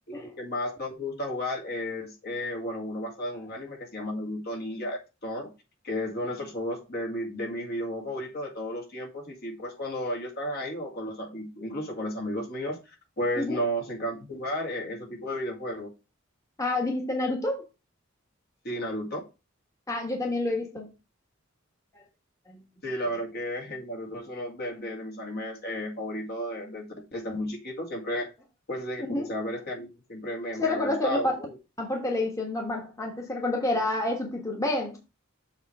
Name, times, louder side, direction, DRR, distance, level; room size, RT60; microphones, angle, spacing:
voice 1, 0.1-5.5 5.8-15.9 18.6-19.2 22.8-28.3 28.7-31.6, equal, 50° left, 1.9 m, -33 dB
voice 2, 16.6-17.6 19.9-20.9 21.9-22.0 22.5-22.6 29.0-29.3 30.6-31.3 31.8-35.0, left 2 dB, 15° left, 1.3 m, -28 dB
7.2 x 3.2 x 5.9 m
head